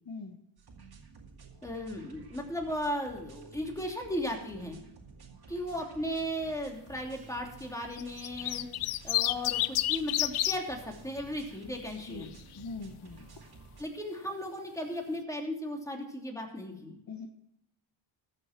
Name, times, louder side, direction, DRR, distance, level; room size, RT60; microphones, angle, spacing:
voice 1, 0.0-0.4 12.1-12.3 12.5-13.3 17.1-17.3, left 4 dB, 45° left, 4 dB, 1.4 m, -41 dB
sound 1, 0.6-13.8, right 4 dB, 50° right, 2.3 m, -52 dB
voice 2, 1.6-4.8 5.5-8.7 9.0-12.3 13.8-17.0, equal, 5° left, 1 dB, 2.9 m, -36 dB
sound 2, 8.0-10.6 11.8-12.3, left 15 dB, 75° left, 0.6 m, -29 dB
14.0 x 6.4 x 5.9 m, 0.80 s
cardioid pair, 70°, 50 cm